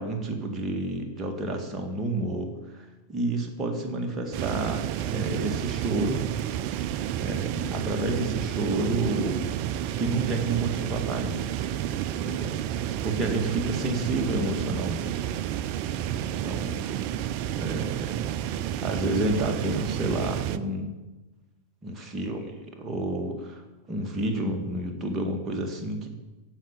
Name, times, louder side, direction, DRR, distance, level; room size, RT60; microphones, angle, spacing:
voice 1, 0.0-6.3 7.2-9.5 9.9-11.4 12.2-15.2 16.4-17.1 17.6-20.9 21.8-23.6 23.9-26.1, right 2 dB, 20° right, 2 dB, 2.0 m, -30 dB
sound 1, 4.3-20.6, right 11 dB, 45° right, 0.5 m, -30 dB
14.5 x 5.8 x 7.2 m, 1.1 s
figure-of-eight pair, 90°, 0 cm